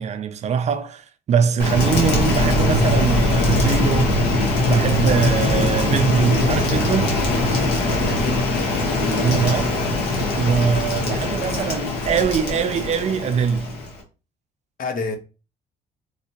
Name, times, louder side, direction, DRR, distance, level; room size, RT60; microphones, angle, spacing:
voice 1, 0.0-7.2 9.0-9.8 10.4-13.8, right 7 dB, 40° right, 0.4 m, -22 dB
Rain, 1.6-14.0, left 1 dB, 80° left, 1.3 m, -21 dB
voice 2, 7.8-8.6 14.8-15.2, left 3 dB, 55° left, 0.8 m, -29 dB
3.2 x 2.8 x 2.8 m
cardioid pair, 110°, 17 cm